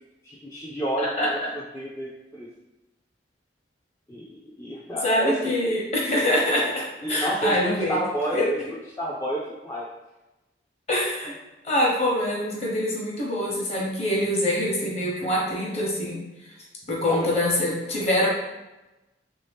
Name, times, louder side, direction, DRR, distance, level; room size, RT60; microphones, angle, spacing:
voice 1, 0.2-2.5 4.1-5.8 7.0-8.6 9.0-9.9 17.0-17.3, right 1 dB, 15° left, -6 dB, 0.4 m, -30 dB
voice 2, 1.0-1.3 5.0-7.9 8.3-8.4 10.9-11.3 11.6-16.2 16.9-18.3, left 1 dB, 35° left, -3 dB, 0.9 m, -24 dB
3.3 x 2.7 x 3.4 m, 1.0 s
head